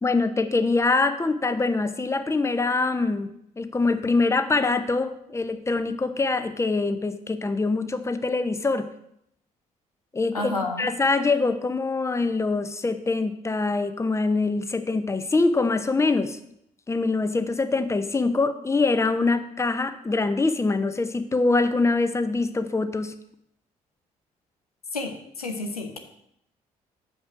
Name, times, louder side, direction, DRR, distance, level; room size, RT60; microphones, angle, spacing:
voice 1, 0.0-3.3 3.6-8.9 10.1-16.4 16.9-23.1, left 3 dB, 15° left, 10 dB, 0.7 m, -24 dB
voice 2, 10.3-10.9 24.9-26.0, left 2 dB, 90° left, 3 dB, 0.7 m, -30 dB
6.2 x 5.4 x 6.1 m, 0.75 s
figure-of-eight pair, 45°, 19 cm